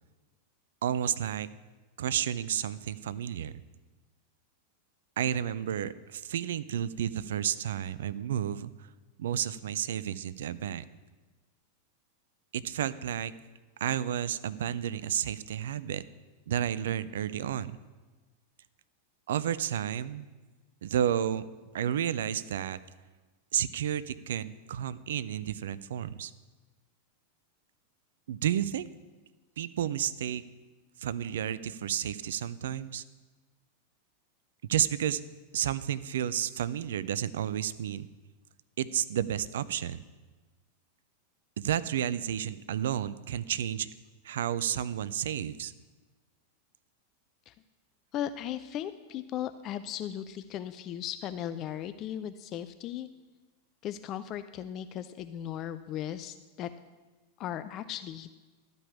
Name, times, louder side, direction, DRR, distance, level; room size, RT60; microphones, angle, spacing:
voice 1, 0.8-1.5 2.0-3.6 5.2-8.9 9.2-10.8 12.5-13.3 13.8-16.0 16.5-17.8 19.3-20.3 20.8-21.4 21.7-22.8 23.5-26.3 28.3-28.9 29.6-30.4 31.0-33.0 34.6-35.2 35.5-38.1 38.8-40.0 41.6-43.9 44.2-45.7, right 10 dB, 60° right, 16 dB, 0.4 m, -31 dB
voice 2, 48.1-53.1 53.8-56.7 57.4-58.3, left 11 dB, 35° left, 12 dB, 0.4 m, -37 dB
12.0 x 5.2 x 8.4 m, 1.3 s
figure-of-eight pair, 90°, 0 cm